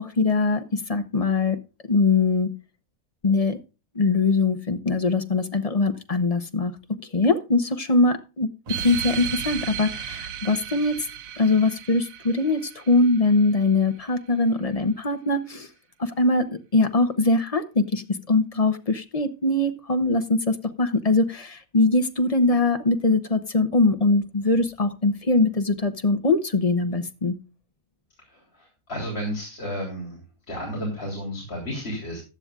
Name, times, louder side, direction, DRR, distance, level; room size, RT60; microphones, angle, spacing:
voice 1, 0.0-1.6 1.9-2.5 3.2-3.6 3.9-6.7 7.1-11.0 11.4-15.7 16.0-27.3, left 3 dB, 30° left, 8 dB, 0.9 m, -22 dB
sound 1, 8.7-13.7, right 9 dB, 75° right, 1.1 m, -35 dB
voice 2, 28.3-30.2 30.5-32.2, equal, 45° left, -2 dB, 3.8 m, -32 dB
15.5 x 10.5 x 2.4 m, 0.31 s
omnidirectional pair, 1.5 m